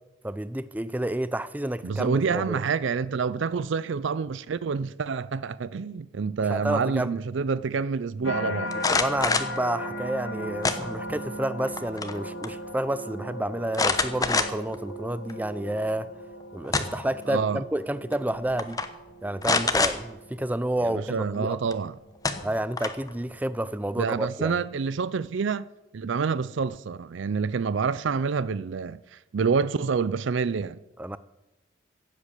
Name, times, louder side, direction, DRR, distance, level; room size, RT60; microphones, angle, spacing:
voice 1, 0.2-2.6 6.5-7.2 8.9-16.1 16.5-18.8 19.2-21.6 22.4-24.6 31.0-31.2, right 1 dB, 10° right, 0.5 m, -30 dB
voice 2, 1.8-8.7 17.3-17.6 20.8-22.0 24.0-25.6 25.9-30.8, right 5 dB, 65° right, 0.4 m, -27 dB
sound 1, 8.2-23.4 24.0-24.4, left 1 dB, 75° left, 2.2 m, -38 dB
sound 2, 8.7-9.6 10.6-11.2 11.6-12.2 12.4-12.5 13.7-14.8 15.3-15.4 16.4-17.1 18.1-18.3 18.6-18.9 19.4-20.0 21.7-21.8 22.2-23.1, left 3 dB, 20° left, 0.9 m, -25 dB
15.5 x 8.2 x 8.2 m
head